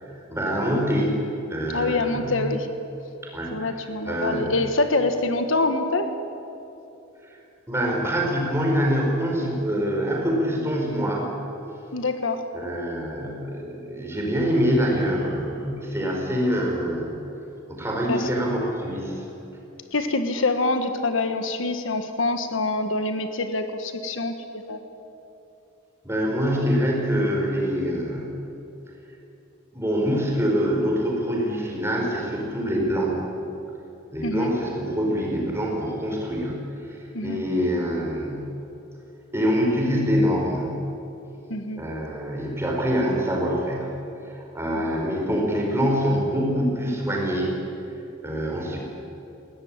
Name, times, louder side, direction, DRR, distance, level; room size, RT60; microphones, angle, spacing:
voice 1, 0.1-2.5 3.3-3.6 4.0-4.5 7.7-11.3 12.5-17.2 17.7-19.3 26.0-28.4 29.7-33.1 34.1-38.5 39.3-40.9 41.8-44.0 44.2-47.5 48.2-48.8, equal, 10° right, -1 dB, 4.6 m, -25 dB
voice 2, 1.7-2.7 3.5-6.1 11.9-12.4 18.0-18.3 19.9-24.8 34.2-34.5 37.1-37.4 41.5-41.8 44.7-44.9, left 2 dB, 70° left, 7 dB, 1.5 m, -25 dB
21.5 x 17.5 x 9.0 m, 2.9 s
head